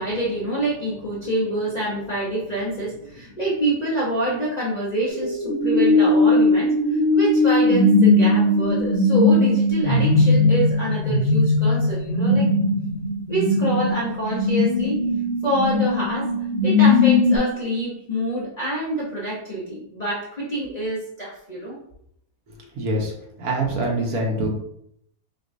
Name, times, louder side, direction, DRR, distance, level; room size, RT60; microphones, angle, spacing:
voice 1, 0.0-12.5 13.3-15.0 15.4-16.3 16.6-21.8, right 1 dB, 40° left, -7 dB, 0.6 m, -26 dB
sound 1, 5.1-17.4, left 2 dB, 85° right, 2.0 m, -19 dB
voice 2, 22.8-23.1 23.4-24.6, right 1 dB, 70° right, -1 dB, 1.4 m, -24 dB
6.1 x 2.3 x 2.6 m, 0.73 s
omnidirectional pair, 1.7 m